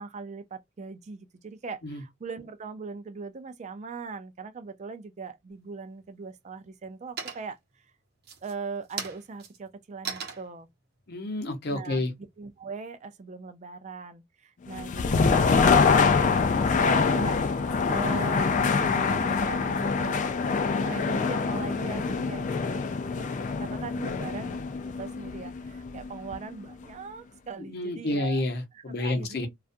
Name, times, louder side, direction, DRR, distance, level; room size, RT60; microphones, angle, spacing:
voice 1, 0.0-7.6 8.4-10.7 11.7-12.0 12.4-20.3 20.7-24.6 25.0-28.4 28.7-29.5, right 4 dB, 35° right, 0.4 m, -40 dB
sound 1, 5.5-6.1 6.5-6.9 7.2-7.7 8.2-12.6, right 6 dB, 55° right, 0.8 m, -40 dB
voice 2, 11.1-12.1 27.7-29.5, left 2 dB, 55° left, 0.7 m, -29 dB
sound 2, 14.7-26.6, left 5 dB, 40° left, 0.3 m, -25 dB
2.3 x 2.1 x 2.5 m
head